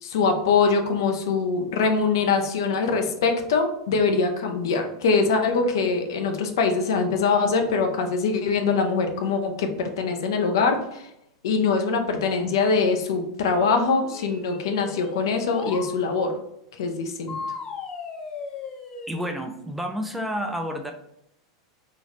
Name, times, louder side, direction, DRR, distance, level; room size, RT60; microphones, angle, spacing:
voice 1, 0.0-11.1 11.4-16.3 16.7-17.3, left 4 dB, 70° left, 5 dB, 0.7 m, -23 dB
sound 1, 14.1-15.9 17.3-19.3, left 5 dB, 30° left, 0.8 m, -36 dB
voice 2, 19.1-20.9, equal, 5° right, 4 dB, 0.5 m, -30 dB
3.2 x 2.9 x 4.0 m, 0.79 s
hypercardioid pair, 95°, 2 cm